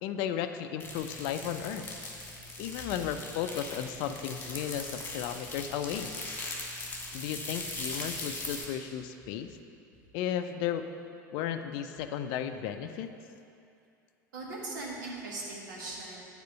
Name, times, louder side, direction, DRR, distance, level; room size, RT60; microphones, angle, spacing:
voice 1, 0.0-1.8 2.6-6.1 7.1-9.5 10.1-10.9 11.3-13.1, left 9 dB, 45° left, 8 dB, 0.5 m, -34 dB
sound 1, 0.8-8.6, left 2 dB, 15° left, 1.8 m, -40 dB
voice 2, 14.3-16.2, right 2 dB, 65° right, -3 dB, 1.8 m, -39 dB
9.1 x 4.4 x 6.7 m, 2.6 s
figure-of-eight pair, 75°, 11 cm